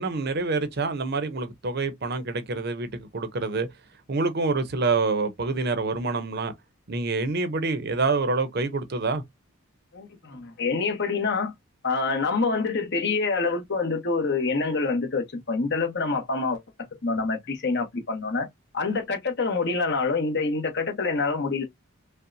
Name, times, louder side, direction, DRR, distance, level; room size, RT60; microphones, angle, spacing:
voice 1, 0.0-3.7 4.1-6.5 6.9-9.2, right 3 dB, 50° right, 0.6 m, -26 dB
voice 2, 9.9-11.5 11.8-16.6 17.0-18.5 18.7-21.6, left 4 dB, 55° left, 1.0 m, -26 dB
5.4 x 2.1 x 2.6 m
head